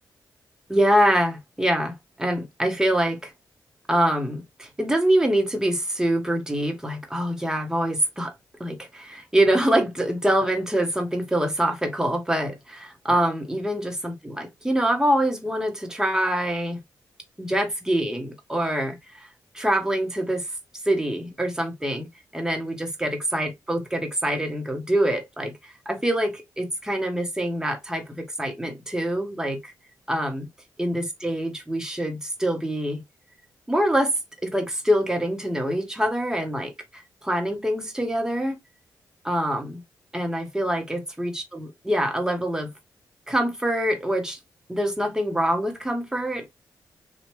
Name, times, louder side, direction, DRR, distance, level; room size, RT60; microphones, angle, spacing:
voice 1, 0.7-3.3 3.9-8.3 8.6-16.8 17.4-19.3 19.5-20.4 20.9-22.1 22.3-29.7 30.1-30.5 30.8-33.0 33.7-38.6 39.2-39.8 40.1-42.7 43.3-44.4 44.7-46.5, right 1 dB, 10° right, 1.2 m, -25 dB
3.0 x 2.4 x 2.9 m
cardioid pair, 55°, 8 cm